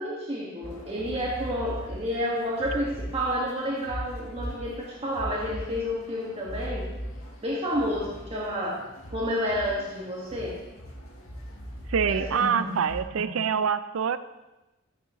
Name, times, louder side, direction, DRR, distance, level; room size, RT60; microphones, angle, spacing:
voice 1, 0.0-6.9 7.4-8.8 9.1-10.6 12.1-12.8 13.1-13.4, equal, 30° right, -5 dB, 1.7 m, -30 dB
sound 1, 0.6-13.0, equal, 80° left, 1.6 m, -40 dB
voice 2, 11.9-14.2, right 7 dB, 90° right, 13 dB, 0.4 m, -25 dB
13.0 x 9.0 x 3.0 m, 1.0 s
head